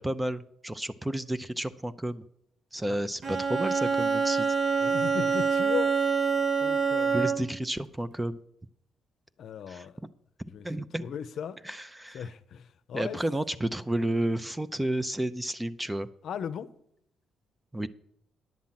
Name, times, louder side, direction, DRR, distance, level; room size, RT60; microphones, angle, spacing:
voice 1, 0.0-2.2 2.7-4.5 7.1-8.4 9.7-9.9 10.6-11.1 11.6-12.3 12.9-16.1 17.7-17.9, right 1 dB, 10° right, 0.6 m, -31 dB
Bowed string instrument, 3.2-7.6, right 5 dB, 45° right, 0.9 m, -26 dB
voice 2, 4.8-5.9 6.6-7.3 9.4-9.9 10.5-11.6 12.1-13.2 16.2-16.7, left 8 dB, 65° left, 0.6 m, -37 dB
10.5 x 7.4 x 5.8 m
cardioid pair, 90°, 0 cm